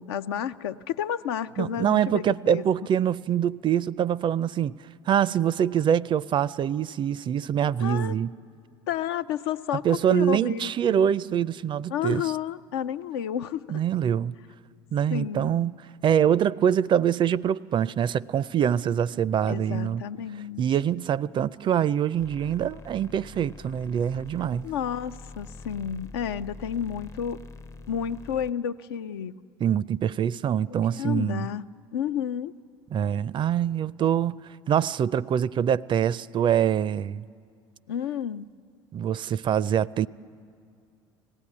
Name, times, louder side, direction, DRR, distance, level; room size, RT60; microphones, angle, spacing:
voice 1, 0.0-2.6 7.8-8.1 8.9-10.7 11.9-13.8 15.1-15.6 19.5-20.6 24.6-27.4 27.9-29.4 31.0-31.6 31.9-32.5 37.9-38.5, left 9 dB, 80° left, 0.5 m, -31 dB
voice 2, 1.6-4.7 5.1-8.3 9.8-12.2 13.7-14.4 14.9-15.7 16.0-20.0 20.6-24.7 29.6-31.5 32.9-34.4 34.7-37.2 38.9-40.1, right 9 dB, 40° right, 0.4 m, -24 dB
sound 1, 22.2-28.5, left 3 dB, 20° left, 0.5 m, -45 dB
19.0 x 15.5 x 9.7 m
hypercardioid pair, 70°, 13 cm